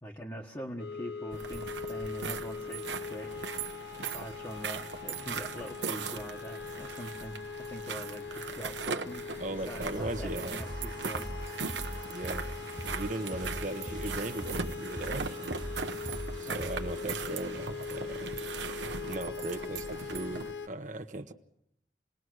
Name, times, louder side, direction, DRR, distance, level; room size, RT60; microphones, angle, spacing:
voice 1, 0.0-3.7 4.0-9.3 9.7-11.3 16.4-16.7 17.0-17.2, equal, 20° left, -2 dB, 1.4 m, -44 dB
sound 1, 0.8-20.7, left 5 dB, 85° left, 0.9 m, -42 dB
sound 2, 1.3-20.5, right 5 dB, 90° right, 1.1 m, -39 dB
voice 2, 9.4-10.6 12.1-12.5 12.9-15.5 16.4-18.5 19.1-21.3, right 2 dB, 45° right, 6 dB, 1.2 m, -38 dB
sound 3, 9.9-17.1, right 1 dB, 25° right, 1.0 m, -41 dB
28.0 x 20.0 x 6.5 m, 0.75 s
head